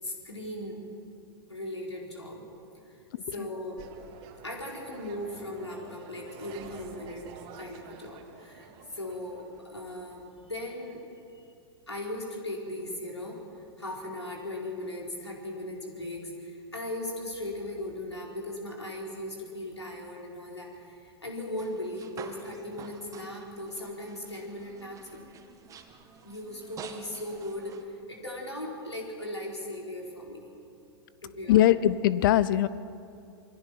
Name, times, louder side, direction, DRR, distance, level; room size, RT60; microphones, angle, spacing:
voice 1, 0.0-0.8 1.5-2.5 2.8-3.0 3.3-3.8 4.4-7.3 7.6-11.1 11.3-11.4 11.9-13.4 13.8-25.2 26.2-30.5 31.2-31.8, left 1 dB, 90° left, -1 dB, 4.4 m, -38 dB
voice 2, 3.1-3.5 31.5-32.7, left 12 dB, 50° left, 17 dB, 0.7 m, -22 dB
sound 1, 3.8-9.9, right 6 dB, 45° right, 2.5 m, -49 dB
sound 2, 21.5-27.8, right 6 dB, 25° right, 1.9 m, -49 dB
27.5 x 22.0 x 5.9 m, 2.5 s
figure-of-eight pair, 100°, 14 cm